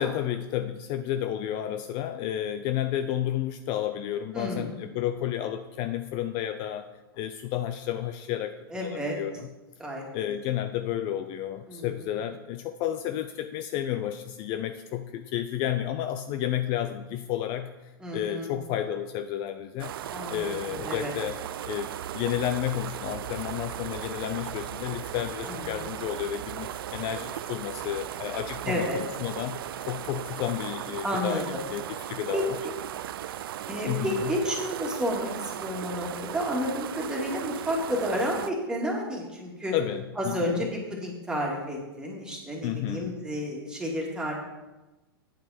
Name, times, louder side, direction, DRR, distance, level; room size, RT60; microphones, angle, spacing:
voice 1, 0.0-6.9 7.1-9.3 10.1-20.0 20.3-21.4 21.6-21.9 22.1-32.6 33.9-34.2 39.7-40.6 42.6-43.1, left 11 dB, 40° left, 10 dB, 0.5 m, -31 dB
voice 2, 4.3-4.7 8.7-9.2 9.8-10.0 11.7-11.9 18.0-18.5 20.1-21.1 25.5-25.9 28.7-29.0 31.0-31.6 32.3-32.7 33.7-39.7 40.2-44.3, equal, 5° right, -2 dB, 2.4 m, -31 dB
sound 1, 19.8-38.5, right 11 dB, 65° right, 0.4 m, -37 dB
9.0 x 7.7 x 4.3 m, 1.1 s
hypercardioid pair, 110°, 13 cm